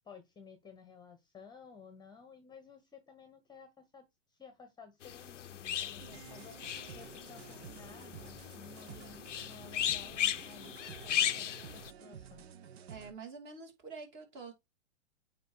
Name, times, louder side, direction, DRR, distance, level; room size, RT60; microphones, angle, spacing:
voice 1, 0.0-6.6 6.9-12.5, left 5 dB, 10° left, 1.1 m, -55 dB
sound 1, 5.0-11.9, left 10 dB, 85° left, 0.6 m, -37 dB
sound 2, 6.0-13.1, right 8 dB, 60° right, 0.9 m, -51 dB
voice 2, 12.9-14.5, right 4 dB, 30° right, 2.6 m, -47 dB
9.0 x 3.0 x 4.7 m
hypercardioid pair, 115°, 36 cm